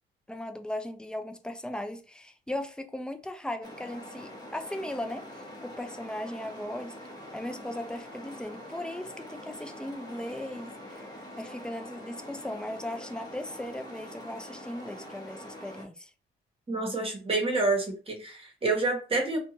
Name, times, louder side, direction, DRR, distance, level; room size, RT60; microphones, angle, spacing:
voice 1, 0.3-7.0 7.3-16.1, left 1 dB, 5° left, 0.4 m, -38 dB
sound 1, 3.6-15.8, left 1 dB, 20° left, 0.9 m, -45 dB
voice 2, 16.7-19.4, right 3 dB, 30° right, 1.1 m, -28 dB
2.6 x 2.2 x 2.9 m
cardioid pair, 90°, 20 cm